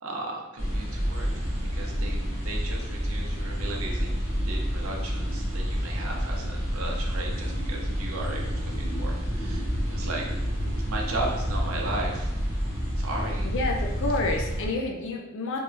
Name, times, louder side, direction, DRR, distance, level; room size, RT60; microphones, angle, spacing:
voice 1, 0.0-10.2 10.8-12.3 13.0-13.5, right 2 dB, 70° right, -1 dB, 0.7 m, -36 dB
sound 1, 0.6-14.7, equal, 40° left, 0.9 m, -29 dB
voice 2, 13.4-15.6, left 2 dB, 60° left, 0 dB, 0.4 m, -29 dB
3.5 x 3.1 x 2.5 m, 0.97 s
head